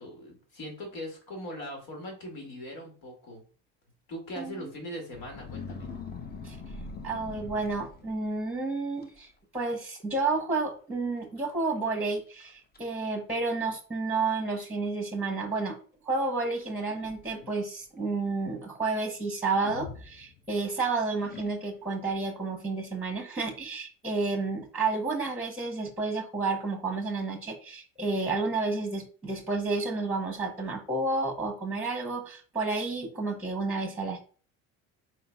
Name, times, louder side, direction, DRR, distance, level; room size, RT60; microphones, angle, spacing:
voice 1, 0.0-3.4 4.1-5.9, equal, 65° left, 1 dB, 2.3 m, -40 dB
sound 1, 5.1-8.4 9.0-9.3 9.6-10.0 10.3-10.4 11.2-11.3 11.8-11.9 12.4-12.8 13.7-13.8 16.6-17.6 19.6-20.7 21.2-21.9, left 4 dB, 25° left, 0.8 m, -43 dB
voice 2, 7.0-9.3 9.5-15.8 16.0-34.2, right 3 dB, 5° right, 3 dB, 1.2 m, -31 dB
4.6 x 3.8 x 2.3 m, 0.39 s
supercardioid pair, 85°, 39 cm